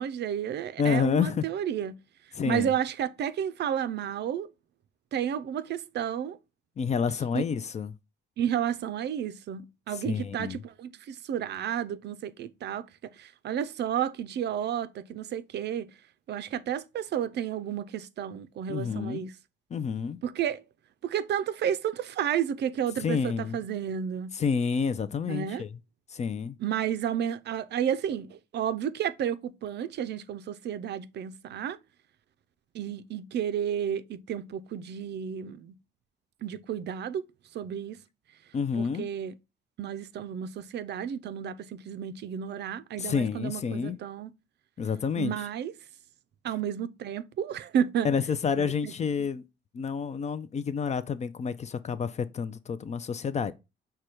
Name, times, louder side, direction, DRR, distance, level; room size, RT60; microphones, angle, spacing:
voice 1, 0.0-2.0 2.4-4.5 5.1-6.4 7.3-7.4 8.4-15.9 16.3-19.3 20.2-20.6 21.0-24.3 25.3-25.6 26.6-31.8 32.7-35.7 36.4-37.2 37.5-38.0 38.8-39.3 39.8-44.3 45.2-45.7 46.4-48.1 48.8-48.9, right 9 dB, 60° right, 0.4 m, -31 dB
voice 2, 0.8-1.5 2.3-2.7 6.8-7.9 9.9-10.6 18.7-19.2 19.7-20.2 23.0-23.6 24.3-25.8 26.1-26.6 38.5-39.1 43.0-44.0 44.8-45.3 48.0-49.4 49.7-53.5, left 6 dB, 35° left, 0.4 m, -29 dB
4.9 x 2.2 x 4.3 m
cardioid pair, 90°, 20 cm